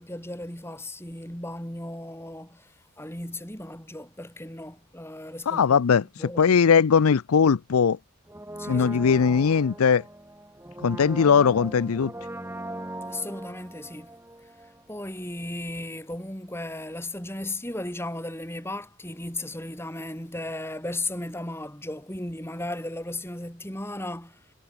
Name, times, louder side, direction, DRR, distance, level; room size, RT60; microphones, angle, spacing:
voice 1, 0.0-5.8 6.2-6.6 8.6-9.5 13.1-14.2 14.9-24.5, left 1 dB, 10° left, 6.5 m, -36 dB
voice 2, 5.5-6.0 6.4-8.0 8.7-10.0 10.8-12.1, left 6 dB, 90° left, 0.5 m, -20 dB
Brass instrument, 8.3-15.1 15.4-15.5, right 1 dB, 10° right, 2.0 m, -40 dB
head